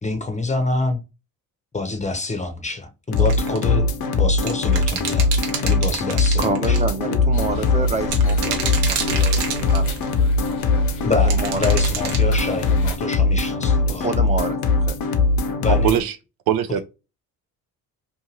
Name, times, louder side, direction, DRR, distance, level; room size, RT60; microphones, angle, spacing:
voice 1, 0.0-1.0 1.7-3.9 4.2-5.3 5.6-6.8 11.0-14.1 15.6-16.0, left 2 dB, 15° left, 0.7 m, -26 dB
sound 1, 3.1-16.0, left 3 dB, 60° left, 0.7 m, -21 dB
sound 2, 3.2-3.6 4.4-6.9 8.1-10.1 11.3-12.2, right 6 dB, 85° right, 0.8 m, -28 dB
voice 2, 6.4-9.8 11.0-11.7 13.9-14.9, right 3 dB, 15° right, 0.7 m, -28 dB
sound 3, 7.3-13.0, left 2 dB, 85° left, 1.0 m, -33 dB
voice 3, 15.8-16.1 16.5-16.8, right 10 dB, 65° right, 0.5 m, -20 dB
2.6 x 2.5 x 2.8 m
supercardioid pair, 70°, 41 cm